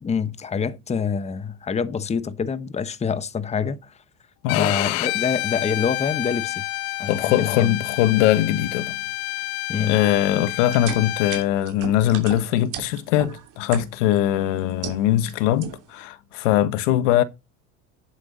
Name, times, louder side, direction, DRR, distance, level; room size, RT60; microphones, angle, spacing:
voice 1, 0.0-3.9 4.6-6.6 7.0-7.7 9.7-10.0, left 6 dB, 20° left, 0.9 m, -26 dB
Bowed string instrument, 4.5-11.5, left 24 dB, 70° left, 0.5 m, -29 dB
voice 2, 7.1-9.0 9.8-17.2, left 12 dB, 85° left, 1.3 m, -21 dB
sound 1, 10.6-14.2 14.6-15.3 15.6-16.0, right 8 dB, 55° right, 3.1 m, -35 dB
9.8 x 7.8 x 4.0 m
supercardioid pair, 120°, 36 cm